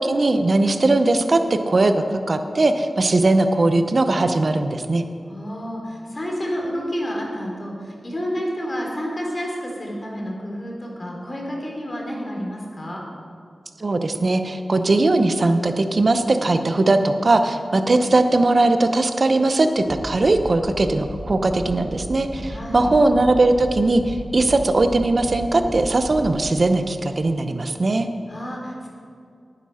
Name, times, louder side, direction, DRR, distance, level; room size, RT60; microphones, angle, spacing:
voice 1, 0.0-5.0 13.8-28.1, right 2 dB, 55° right, 8 dB, 0.7 m, -19 dB
voice 2, 5.3-13.0 22.5-22.9 28.3-28.9, equal, 40° left, -1 dB, 3.3 m, -30 dB
sound 1, 18.2-26.5, equal, ahead, 3.0 m, -36 dB
9.9 x 9.6 x 5.7 m, 2.4 s
cardioid pair, 55°, 0 cm